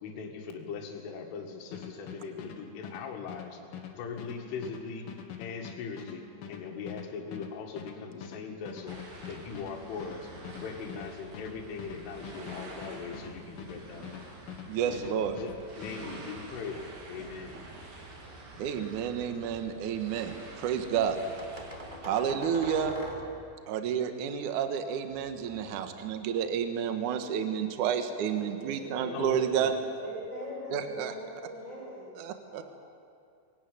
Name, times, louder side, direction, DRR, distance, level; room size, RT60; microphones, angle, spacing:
voice 1, 0.0-3.6 3.9-5.1 5.4-9.0 9.3-14.2 14.9-15.5 15.8-16.8 17.1-17.6 29.1-29.7, left 5 dB, 75° left, 1 dB, 4.4 m, -40 dB
sound 1, 1.7-14.7 14.9-16.0, left 8 dB, 60° left, 3.3 m, -44 dB
sound 2, 8.9-22.0, right 2 dB, 50° right, 4.8 m, -47 dB
voice 2, 14.7-15.4 18.6-21.2 22.0-23.0 23.7-29.7 30.7-31.1 32.2-32.6, right 8 dB, 75° right, 7 dB, 1.9 m, -30 dB
sound 3, 18.1-18.7 19.3-20.2 21.4-23.6 25.1-26.5, equal, 35° right, 0.7 m, -44 dB
voice 3, 28.3-29.5 30.0-32.0 32.5-32.7, equal, 5° left, -8 dB, 6.5 m, -41 dB
23.0 x 17.5 x 9.3 m, 2.4 s
omnidirectional pair, 5.7 m